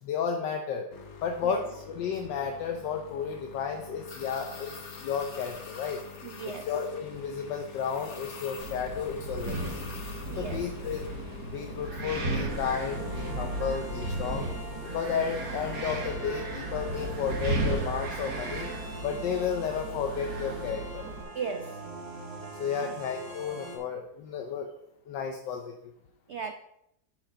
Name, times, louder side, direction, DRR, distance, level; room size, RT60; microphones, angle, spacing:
voice 1, 0.0-0.9 1.2-6.0 6.4-9.8 10.4-11.1 11.5-14.5 14.9-18.7 19.0-21.1 22.6-24.7 25.1-25.8, left 7 dB, 90° left, 1.4 m, -32 dB
sound 1, 0.9-13.5, left 5 dB, 45° left, 1.2 m, -45 dB
voice 2, 6.2-6.7 10.3-10.7 21.3-21.9 22.8-22.9 26.3-26.5, right 6 dB, 85° right, 0.6 m, -36 dB
Wind, 8.6-21.2, right 2 dB, 65° right, 2.0 m, -35 dB
sound 2, 12.5-23.8, right 1 dB, 25° right, 2.1 m, -42 dB
9.6 x 5.0 x 5.1 m
omnidirectional pair, 1.9 m